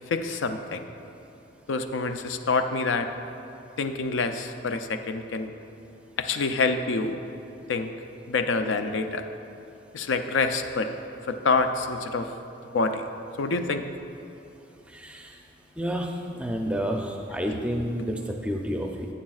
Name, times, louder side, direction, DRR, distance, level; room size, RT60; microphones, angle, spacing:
voice 1, 0.1-0.8 1.7-3.1 3.8-5.5 6.2-7.2 7.7-7.9 8.3-9.2 9.9-10.9 11.3-12.3 12.7-13.1 13.4-13.8, left 4 dB, 85° left, 7 dB, 0.5 m, -26 dB
voice 2, 14.9-15.4 15.8-16.1 16.4-19.1, equal, 5° right, 2 dB, 0.5 m, -29 dB
11.5 x 8.6 x 2.4 m, 2.9 s
head